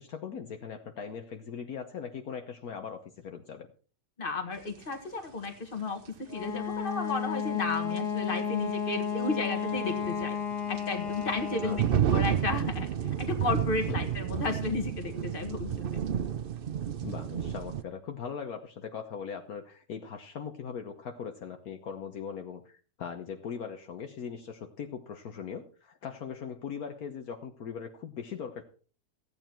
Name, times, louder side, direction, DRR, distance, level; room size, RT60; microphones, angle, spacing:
voice 1, 0.0-3.7 11.6-12.0 13.9-14.1 17.0-28.6, left 7 dB, 65° left, 5 dB, 1.5 m, -40 dB
voice 2, 4.2-10.4 10.7-12.9 13.2-15.7, left 3 dB, 35° left, 6 dB, 2.0 m, -33 dB
sound 1, 4.8-4.9 7.4-7.5 8.0-8.1 9.6-17.8, right 9 dB, 60° right, 0.6 m, -31 dB
Wind instrument woodwind instrument, 6.3-12.0, left 7 dB, 90° left, 2.3 m, -33 dB
15.5 x 9.2 x 4.5 m, 0.41 s
omnidirectional pair, 1.7 m